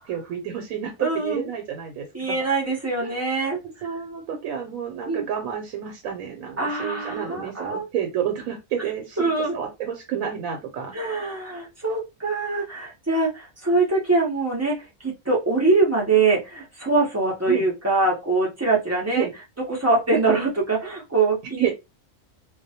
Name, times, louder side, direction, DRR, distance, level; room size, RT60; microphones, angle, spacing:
voice 1, 0.1-2.4 3.0-3.1 3.8-11.0 17.5-17.7 19.1-19.3 21.6-21.7, right 8 dB, 90° right, 3 dB, 1.0 m, -30 dB
voice 2, 1.0-1.4 2.1-3.9 5.0-5.2 6.6-7.8 9.2-9.5 10.9-19.3 19.7-21.7, right 3 dB, 25° right, -3 dB, 0.3 m, -23 dB
2.3 x 2.1 x 2.7 m, 0.23 s
omnidirectional pair, 1.4 m